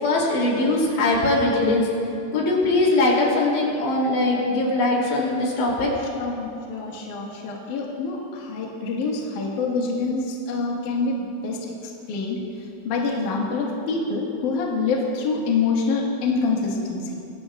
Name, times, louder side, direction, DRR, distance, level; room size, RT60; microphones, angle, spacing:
voice 1, 0.0-1.9 2.3-5.9, left 2 dB, 85° left, -3 dB, 5.1 m, -21 dB
voice 2, 6.2-12.4 12.8-17.1, left 4 dB, 55° left, -3 dB, 2.8 m, -26 dB
23.0 x 16.5 x 2.4 m, 2.7 s
omnidirectional pair, 4.8 m